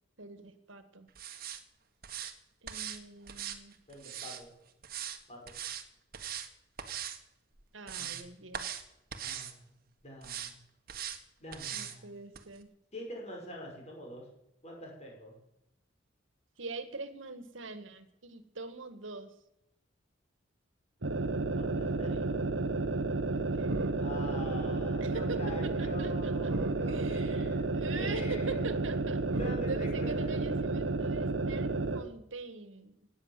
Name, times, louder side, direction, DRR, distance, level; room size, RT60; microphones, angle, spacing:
voice 1, 0.2-1.1 2.6-3.7 7.7-8.6 11.7-12.7 16.6-19.3 21.9-22.3 23.3-23.7 25.0-26.5 26.9-29.2 29.6-33.0, right 3 dB, 85° right, 10 dB, 1.8 m, -43 dB
sound 1, 1.2-1.6 2.0-2.3 2.7-3.0 3.3-4.4 4.8-5.2 5.5-5.8 6.1-6.5 6.8-7.2 7.6-8.2 8.5-8.8 9.1-9.5 10.2-10.5 10.9-11.2 11.5-12.0 12.3-12.4, right 9 dB, 50° right, 1.6 m, -40 dB
voice 2, 3.9-4.5 5.3-5.5 8.0-8.2 9.2-9.7 10.0-10.6 11.4-12.1 12.9-14.3 14.6-15.4 21.5-22.4 23.9-28.6 29.4-30.4, left 1 dB, 35° left, -1 dB, 6.2 m, -45 dB
sound 2, 21.0-32.1, right 3 dB, 70° right, 1.1 m, -31 dB
17.0 x 9.9 x 7.6 m, 0.85 s
head